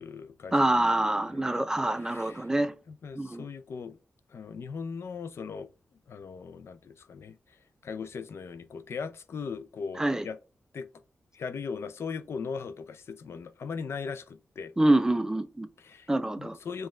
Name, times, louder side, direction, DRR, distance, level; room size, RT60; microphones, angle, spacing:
voice 1, 0.0-1.0 1.3-1.5 2.0-2.5 2.9-4.0 4.3-5.7 6.1-7.6 7.8-10.4 10.7-10.9 11.3-14.7 15.8-16.1 16.4-16.9, left 5 dB, 65° left, 0.4 m, -39 dB
voice 2, 0.5-2.7 3.2-3.4 10.0-10.3 14.8-15.7 16.1-16.6, right 1 dB, 15° right, 0.4 m, -26 dB
5.3 x 2.4 x 3.1 m
wide cardioid pair, 135°, 5 cm